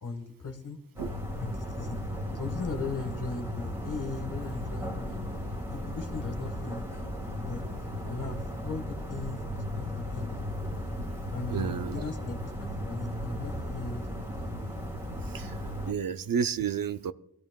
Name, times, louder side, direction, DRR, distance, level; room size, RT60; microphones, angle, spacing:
voice 1, 0.0-0.8 1.4-5.2 5.7-6.9 7.5-7.6 8.0-10.4 11.3-14.1, left 3 dB, 55° left, 6 dB, 1.8 m, -38 dB
sound 1, 1.0-15.9, left 1 dB, 5° right, 2.4 m, -36 dB
voice 2, 11.5-12.0 15.3-15.5 15.9-17.1, right 7 dB, 65° right, 11 dB, 0.6 m, -31 dB
23.0 x 15.0 x 2.3 m, 0.73 s
wide cardioid pair, 150°, 38 cm